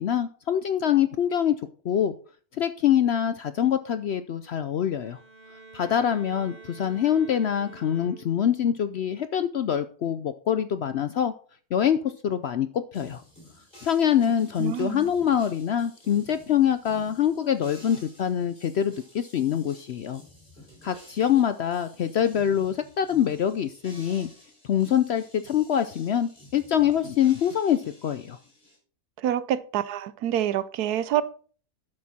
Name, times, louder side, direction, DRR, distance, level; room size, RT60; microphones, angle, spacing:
voice 1, 0.0-1.6 1.8-2.1 2.6-5.2 5.7-11.3 11.7-13.2 13.8-20.2 20.8-24.3 24.7-28.4, left 9 dB, 65° left, 0.6 m, -25 dB
Bowed string instrument, 4.9-8.6, right 3 dB, 45° right, 2.3 m, -48 dB
sound 1, 12.9-28.8, equal, 30° left, 5.5 m, -52 dB
voice 2, 14.6-15.1 29.2-31.2, right 11 dB, 85° right, 1.2 m, -27 dB
12.0 x 6.6 x 4.2 m
omnidirectional pair, 1.6 m